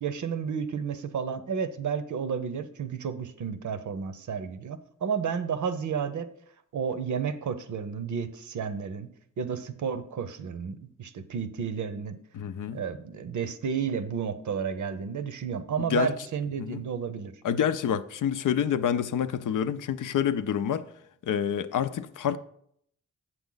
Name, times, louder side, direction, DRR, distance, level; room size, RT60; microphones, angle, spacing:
voice 1, 0.0-6.3 6.7-9.1 9.4-12.2 12.7-17.3, right 6 dB, 60° right, 0.7 m, -32 dB
voice 2, 12.3-12.8 15.9-16.1 16.6-16.8 17.4-20.9 21.2-22.4, left 8 dB, 70° left, 0.5 m, -27 dB
7.9 x 6.2 x 3.9 m
cardioid pair, 85°, 33 cm